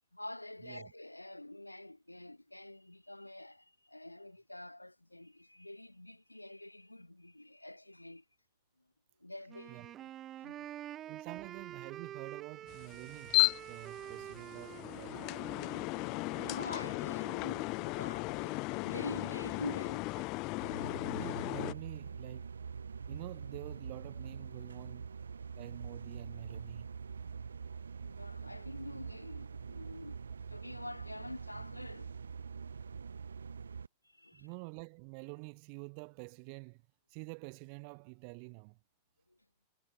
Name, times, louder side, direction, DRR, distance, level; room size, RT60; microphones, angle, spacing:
voice 1, 0.1-8.2 9.2-10.1 10.4-10.7 16.4-20.2 28.0-32.2 34.0-34.5 39.3-39.4, left 1 dB, 85° left, 2.7 m, -47 dB
Wind instrument woodwind instrument, 9.5-17.3, right 12 dB, 30° right, 0.9 m, -48 dB
voice 2, 11.1-15.3 20.8-22.5 23.1-25.1 25.5-26.9 34.3-36.8 37.1-38.8, right 40 dB or more, 45° right, 4.2 m, -48 dB
sound 1, 12.7-21.7, left 26 dB, 40° left, 0.3 m, -35 dB
sound 2, 20.6-33.9, right 6 dB, 75° right, 1.5 m, -44 dB
figure-of-eight pair, 90°, 0 cm